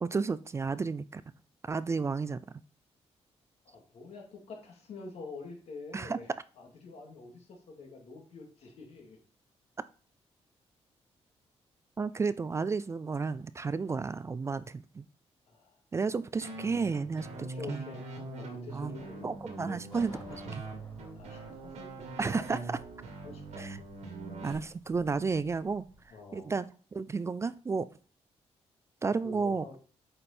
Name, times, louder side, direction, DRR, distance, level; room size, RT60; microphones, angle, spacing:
voice 1, 0.0-1.2 1.6-2.6 5.9-6.2 12.0-15.1 15.9-17.3 17.7-17.9 18.7-20.6 22.2-22.8 23.6-23.8 24.4-27.9 29.0-29.7, right 4 dB, 25° right, 15 dB, 0.3 m, -32 dB
voice 2, 3.6-6.3 6.6-9.2 15.5-15.8 16.4-16.5 17.3-18.0 18.3-19.8 21.1-22.7 23.2-23.7 26.1-26.5 29.2-29.8, left 3 dB, 70° left, 1 dB, 2.5 m, -47 dB
sound 1, 16.4-24.5, right 3 dB, 90° right, 2.1 m, -43 dB
sound 2, 19.9-26.1, left 1 dB, 35° left, 3.4 m, -55 dB
8.6 x 5.1 x 4.3 m, 0.40 s
cardioid pair, 130°, 11 cm